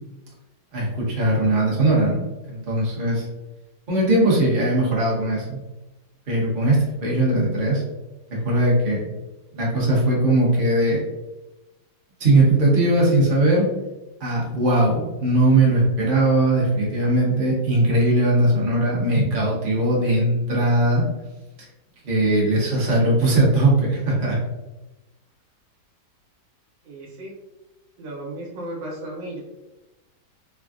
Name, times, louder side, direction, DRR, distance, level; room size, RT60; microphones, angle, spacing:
voice 1, 0.7-3.2 3.9-5.6 6.3-7.8 8.3-9.0 9.5-11.0 12.2-13.7 14.2-21.0 22.0-24.4, right 1 dB, 40° right, -4 dB, 0.8 m, -19 dB
voice 2, 26.8-27.3 28.0-29.4, right 1 dB, 90° right, -2 dB, 1.6 m, -34 dB
3.5 x 2.2 x 2.4 m, 1.0 s
omnidirectional pair, 1.9 m